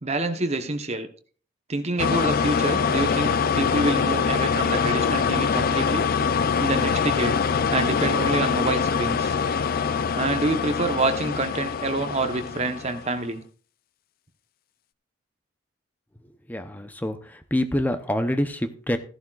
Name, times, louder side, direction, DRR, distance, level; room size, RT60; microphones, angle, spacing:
voice 1, 0.0-1.1 1.7-6.0 6.6-7.4 7.7-9.3 10.2-13.4, right 2 dB, 35° right, 8 dB, 0.9 m, -27 dB
sound 1, 2.0-13.2, left 6 dB, 50° left, 0.4 m, -24 dB
voice 2, 16.5-19.0, left 1 dB, 10° left, 8 dB, 0.7 m, -26 dB
14.0 x 11.5 x 2.4 m, 0.43 s
head